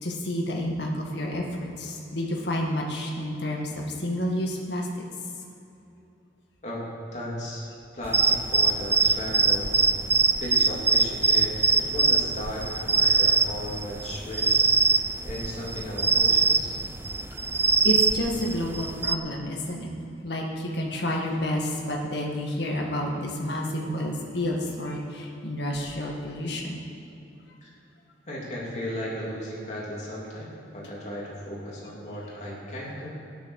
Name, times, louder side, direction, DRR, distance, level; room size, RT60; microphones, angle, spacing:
voice 1, 0.0-4.9 17.8-19.9 20.2-26.8, equal, 65° left, -1 dB, 2.0 m, -30 dB
voice 2, 6.6-7.7 7.9-9.8 10.4-14.5 14.8-16.7 27.6-27.7 28.3-33.1, equal, 40° left, -5 dB, 3.3 m, -36 dB
sound 1, 8.0-19.2, right 4 dB, 10° right, 0.3 m, -23 dB
12.5 x 10.5 x 6.6 m, 3.0 s
head